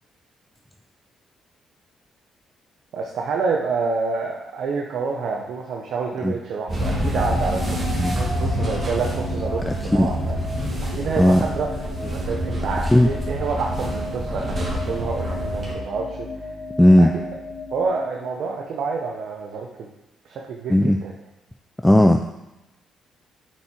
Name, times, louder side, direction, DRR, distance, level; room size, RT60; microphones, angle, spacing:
voice 1, 2.9-10.4 10.9-16.3 17.0-17.1 17.7-19.9 20.2-21.1, right 4 dB, 70° right, 0 dB, 0.8 m, -28 dB
sound 1, 6.7-15.7, equal, 35° right, 2.3 m, -27 dB
sound 2, 6.8-18.9, left 1 dB, 30° left, 2.3 m, -35 dB
voice 2, 9.7-10.1 11.2-11.4 12.9-13.1 16.8-17.1 20.7-21.0 21.8-22.3, left 1 dB, 10° left, 5 dB, 0.4 m, -15 dB
7.2 x 4.6 x 4.5 m, 0.99 s
cardioid pair, 90°, 0 cm